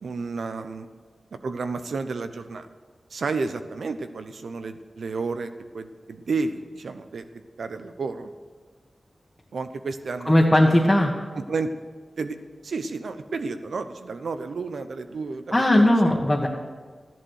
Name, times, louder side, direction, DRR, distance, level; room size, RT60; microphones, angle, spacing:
voice 1, 0.0-0.9 1.3-2.7 3.1-7.2 7.6-8.3 9.5-10.9 11.3-11.7 12.2-12.4 12.6-15.9, right 4 dB, 80° right, 9 dB, 0.9 m, -31 dB
voice 2, 10.2-11.1 15.5-16.5, left 1 dB, 15° left, -3 dB, 1.6 m, -18 dB
14.0 x 11.0 x 6.5 m, 1.5 s
wide cardioid pair, 85°, 0 cm